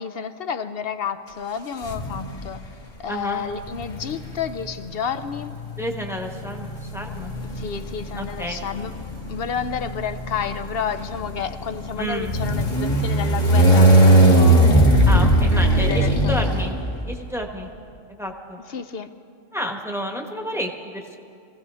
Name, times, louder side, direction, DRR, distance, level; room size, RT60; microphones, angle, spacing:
voice 1, 0.0-2.6 3.0-5.6 7.5-8.9 9.3-15.1 15.7-16.3 18.7-19.1, left 7 dB, 60° left, 10 dB, 0.7 m, -30 dB
sound 1, 1.8-2.5 3.6-17.3, right 1 dB, 35° left, 1.4 m, -19 dB
voice 2, 3.1-3.5 5.8-7.3 8.2-8.6 12.0-12.3 15.1-16.8 17.0-17.7 18.2-18.6 19.5-21.2, equal, ahead, 2 dB, 1.1 m, -30 dB
26.0 x 16.0 x 3.4 m, 2.5 s
omnidirectional pair, 1.4 m